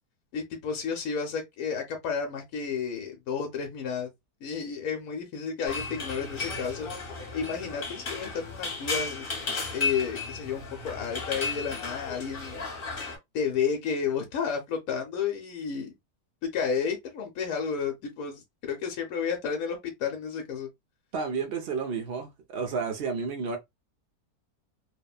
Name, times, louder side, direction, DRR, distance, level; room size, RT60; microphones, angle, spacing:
voice 1, 0.3-4.1 4.4-6.9 7.3-9.3 9.7-12.7 13.3-15.9 16.5-20.7, left 6 dB, 70° left, 1.0 m, -31 dB
sound 1, 5.7-13.2, left 4 dB, 40° left, 1.0 m, -34 dB
voice 2, 21.1-23.6, right 5 dB, 75° right, 0.5 m, -31 dB
2.8 x 2.1 x 2.3 m
omnidirectional pair, 1.6 m